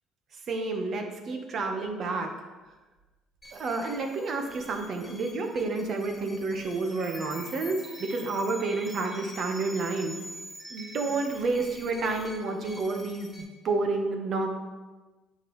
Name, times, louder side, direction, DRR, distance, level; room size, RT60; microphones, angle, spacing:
voice 1, 0.5-2.3 3.5-10.1 10.7-14.5, right 3 dB, 55° right, 4 dB, 1.3 m, -30 dB
sound 1, 3.4-13.4, equal, 10° left, 2.0 m, -45 dB
9.5 x 5.3 x 3.2 m, 1.2 s
cardioid pair, 100°, 0 cm